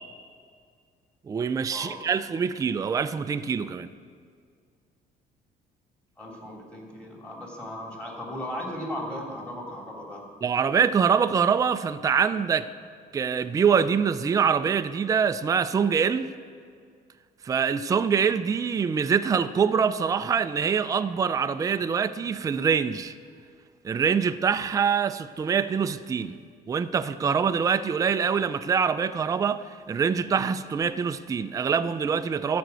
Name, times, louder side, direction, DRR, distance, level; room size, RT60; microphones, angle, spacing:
voice 1, 1.3-3.9 10.4-12.7 13.1-16.3 17.4-23.1 23.8-26.4 26.7-32.6, right 6 dB, 20° right, 0.3 m, -24 dB
voice 2, 6.2-10.3, left 1 dB, 5° left, 2.7 m, -36 dB
13.0 x 5.1 x 7.9 m
cardioid pair, 110°, 17 cm